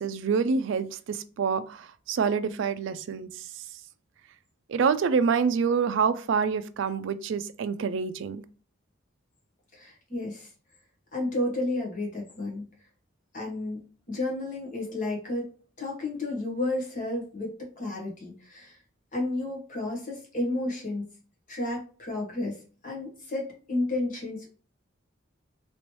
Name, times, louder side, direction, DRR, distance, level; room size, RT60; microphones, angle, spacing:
voice 1, 0.0-3.4 4.7-8.4, right 6 dB, 65° right, 0.3 m, -27 dB
voice 2, 9.7-10.5 11.1-12.6 13.3-13.8 14.1-15.5 15.8-18.8 19.1-21.1 21.5-24.5, left 2 dB, 40° left, 1.1 m, -32 dB
3.0 x 2.9 x 3.1 m
head